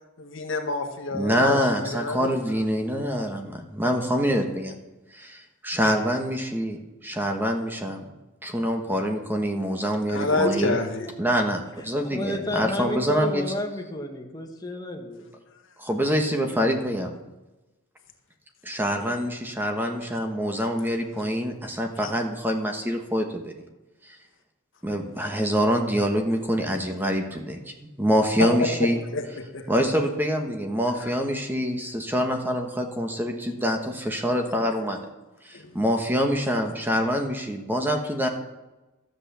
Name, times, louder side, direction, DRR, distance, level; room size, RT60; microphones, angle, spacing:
voice 1, 0.2-2.3 10.1-11.1 22.0-22.1 28.4-30.0 31.0-31.1 35.5-35.7, left 2 dB, 60° left, 5 dB, 1.5 m, -28 dB
voice 2, 1.1-4.7 5.1-8.0 8.4-10.8 11.2-13.4 15.8-17.1 18.6-23.5 24.0-24.2 24.8-29.0 29.7-35.0 35.4-38.3, equal, 10° right, 3 dB, 1.2 m, -25 dB
voice 3, 10.1-10.5 11.0-11.1 12.0-15.2, left 1 dB, 20° left, 2 dB, 1.5 m, -31 dB
13.0 x 8.1 x 6.9 m, 1.1 s
head